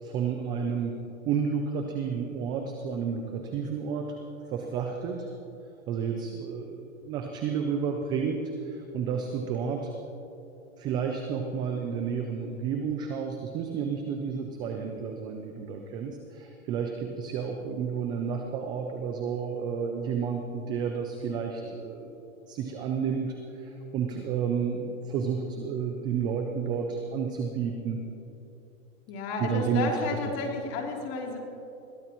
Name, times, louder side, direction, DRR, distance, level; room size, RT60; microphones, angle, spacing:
voice 1, 0.0-0.9 1.2-4.1 4.5-5.3 5.9-9.9 10.8-22.1 22.5-28.0 29.4-30.0, right 6 dB, 10° right, 3 dB, 0.3 m, -31 dB
voice 2, 29.1-31.4, left 3 dB, 35° left, 0 dB, 3.1 m, -31 dB
21.0 x 16.0 x 3.0 m, 2.9 s
hypercardioid pair, 125°, 41 cm